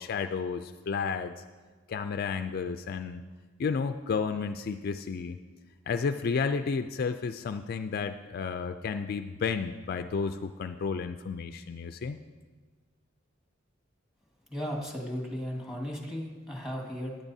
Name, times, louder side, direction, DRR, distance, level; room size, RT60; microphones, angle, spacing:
voice 1, 0.0-1.3 1.9-3.2 3.6-5.4 5.9-12.2, left 5 dB, 50° left, 8 dB, 0.3 m, -32 dB
voice 2, 14.5-17.2, equal, 5° right, 0 dB, 1.7 m, -35 dB
16.0 x 10.5 x 2.7 m, 1.4 s
head